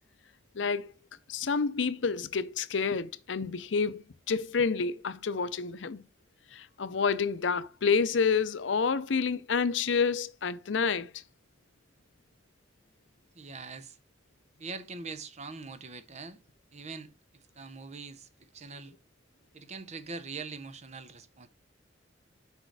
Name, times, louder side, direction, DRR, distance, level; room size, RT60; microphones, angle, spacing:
voice 1, 0.5-0.9 1.3-6.0 6.5-11.1, left 5 dB, 85° left, 0.6 m, -29 dB
voice 2, 13.3-14.0 14.6-16.4 16.7-17.1 17.6-19.0 19.5-21.5, right 4 dB, 40° right, 0.8 m, -42 dB
6.4 x 5.0 x 4.7 m
head